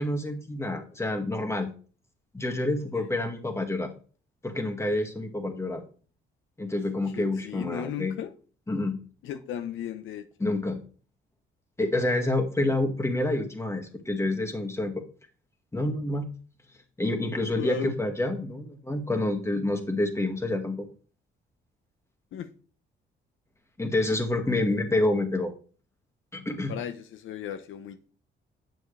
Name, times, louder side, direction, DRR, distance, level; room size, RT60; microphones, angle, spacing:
voice 1, 0.0-1.7 2.3-3.9 4.4-5.8 6.6-8.1 8.7-9.0 10.4-10.8 11.8-15.0 15.7-16.3 17.0-20.9 23.8-25.5 26.3-26.8, left 2 dB, 15° left, 2.0 m, -28 dB
voice 2, 7.1-8.3 9.2-10.3 17.5-17.9 22.3-22.5 24.8-25.0 26.7-28.1, left 9 dB, 80° left, 0.9 m, -35 dB
9.3 x 7.1 x 3.3 m
cardioid pair, 90°, 20 cm